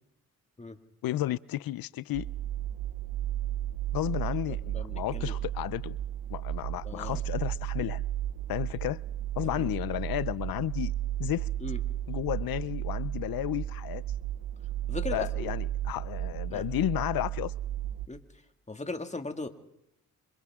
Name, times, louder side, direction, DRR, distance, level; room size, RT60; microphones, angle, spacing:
voice 1, 1.0-2.3 3.9-6.0 6.3-8.0 8.5-9.0 9.4-10.9 11.2-11.5 12.1-14.0 15.1-17.5, left 14 dB, 80° left, 0.7 m, -32 dB
sound 1, 2.1-18.1, right 12 dB, 80° right, 0.9 m, -34 dB
voice 2, 4.7-5.4 6.8-7.2 9.6-9.7 11.6-11.8 14.9-15.5 16.5-16.6 18.1-18.2 18.7-19.5, left 3 dB, 20° left, 2.3 m, -38 dB
29.0 x 26.5 x 3.7 m
cardioid pair, 60°, 35 cm